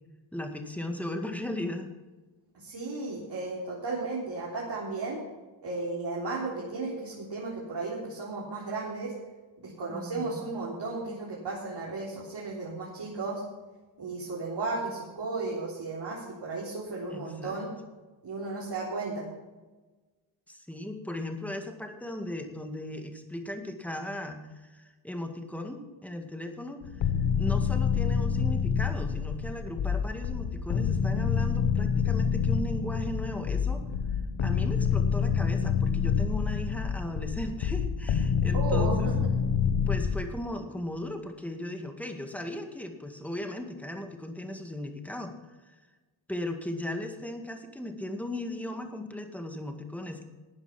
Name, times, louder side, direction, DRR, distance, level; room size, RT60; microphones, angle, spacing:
voice 1, 0.3-1.9 9.9-10.4 17.1-17.6 20.5-27.1 27.4-33.8 34.4-39.2 39.9-45.3 45.6-45.8 46.3-50.3, left 1 dB, 5° left, 4 dB, 1.9 m, -37 dB
voice 2, 2.5-5.2 5.6-9.1 9.6-13.4 14.0-17.7 18.2-19.3 38.5-39.2, right 3 dB, 55° right, -5 dB, 3.7 m, -34 dB
sound 1, 26.8-40.2, left 7 dB, 70° left, 1.2 m, -27 dB
13.0 x 9.0 x 5.9 m, 1.3 s
cardioid pair, 85°, 50 cm